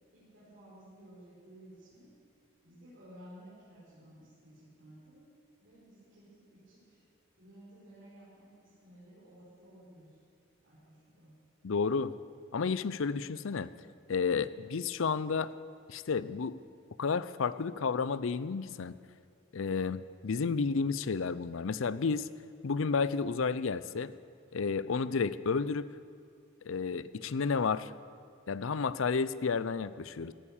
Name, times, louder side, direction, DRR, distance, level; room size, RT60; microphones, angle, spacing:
voice 1, 0.1-2.1 2.6-5.3 5.6-7.0 7.3-10.2 10.6-11.3, right 1 dB, 55° right, -11 dB, 5.3 m, -55 dB
voice 2, 11.6-12.1 12.5-13.7 14.1-15.5 15.9-16.6 17.0-18.9 19.5-22.3 22.6-24.1 24.5-25.9 26.6-27.9 28.5-30.3, left 5 dB, 65° left, 16 dB, 0.5 m, -31 dB
17.0 x 12.0 x 7.2 m, 2.2 s
head